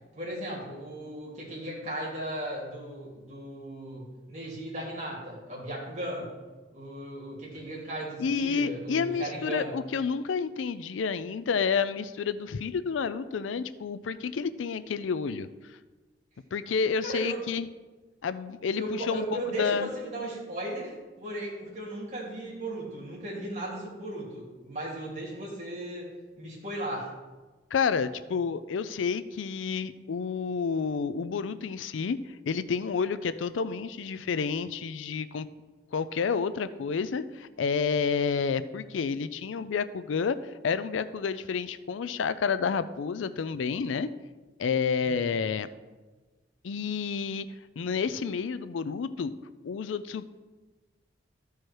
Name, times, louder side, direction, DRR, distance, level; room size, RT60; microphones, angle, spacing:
voice 1, 0.1-6.3 6.7-9.7 17.0-17.4 18.8-26.1 26.4-27.1 45.0-45.3, right 1 dB, 35° right, -5 dB, 2.9 m, -36 dB
voice 2, 8.2-15.5 16.5-17.7 18.2-19.9 27.7-32.2 32.5-35.5 35.9-44.1 44.6-45.7 46.6-47.5 47.8-49.4 49.6-50.3, left 5 dB, 90° left, 14 dB, 0.4 m, -30 dB
13.0 x 4.7 x 4.6 m, 1.3 s
head